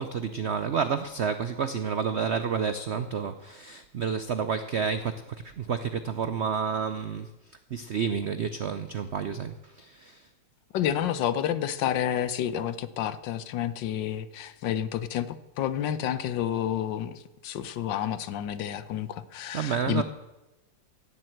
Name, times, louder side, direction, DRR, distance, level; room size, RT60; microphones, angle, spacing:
voice 1, 0.0-10.3 19.5-20.0, right 6 dB, 90° right, 10 dB, 0.5 m, -30 dB
voice 2, 10.7-20.0, left 10 dB, 75° left, 14 dB, 1.4 m, -30 dB
16.0 x 7.7 x 7.8 m, 1.0 s
omnidirectional pair, 2.0 m